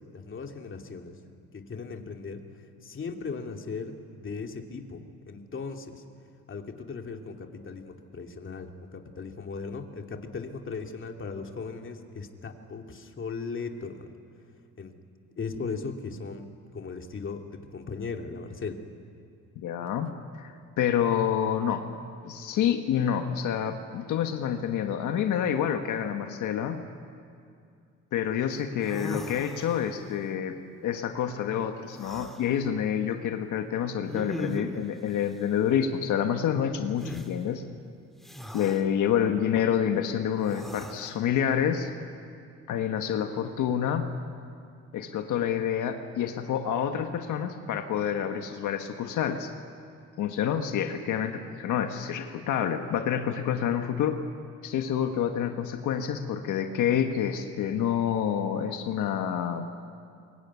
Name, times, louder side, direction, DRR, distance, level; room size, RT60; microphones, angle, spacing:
voice 1, 0.1-1.2 1.5-2.4 2.8-6.0 6.5-14.1 14.8-15.0 15.4-18.8, left 4 dB, 40° left, 3 dB, 2.7 m, -38 dB
voice 2, 19.6-21.9 22.2-26.8 28.1-30.6 30.8-37.6 38.5-41.9 42.7-44.1 44.9-49.5 50.2-54.2 54.6-59.6, left 9 dB, 80° left, 5 dB, 1.5 m, -28 dB
sound 1, 28.5-28.6 28.8-30.1 31.9-32.5 34.1-34.9 37.0-37.3 38.2-38.8 40.4-41.2, equal, ahead, 2.6 m, -39 dB
24.0 x 22.5 x 9.7 m, 2.4 s
cardioid pair, 90°, 30 cm